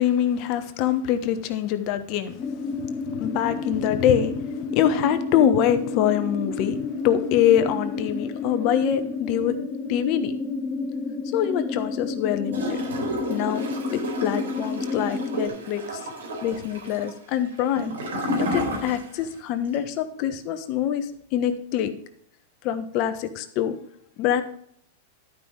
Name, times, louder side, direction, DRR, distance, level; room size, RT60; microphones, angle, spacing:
voice 1, 0.0-2.4 2.8-4.4 4.7-9.6 9.9-10.3 11.3-12.8 13.3-13.6 13.9-16.0 16.4-17.9 18.4-21.9 22.6-23.7 24.2-24.4, left 10 dB, 45° left, 9 dB, 1.2 m, -24 dB
sound 1, 2.4-15.5, left 4 dB, 25° left, 2.0 m, -31 dB
Gurgling / Toilet flush, 12.5-19.4 19.7-19.8, equal, 90° right, 3.8 m, -31 dB
11.5 x 5.6 x 4.8 m, 0.67 s
hypercardioid pair, 135°, 0 cm